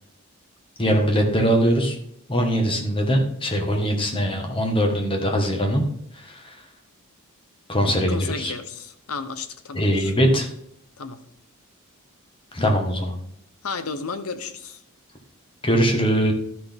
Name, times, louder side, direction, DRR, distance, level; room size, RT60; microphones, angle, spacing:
voice 1, 0.8-1.9 2.3-5.8 6.1-6.5 7.7-8.5 9.7-10.5 12.5-13.1 15.6-16.3, equal, 25° left, 3 dB, 1.5 m, -21 dB
voice 2, 8.1-10.1 11.0-11.2 13.6-14.8, left 4 dB, 80° left, 11 dB, 0.8 m, -33 dB
12.5 x 5.9 x 3.6 m, 0.71 s
head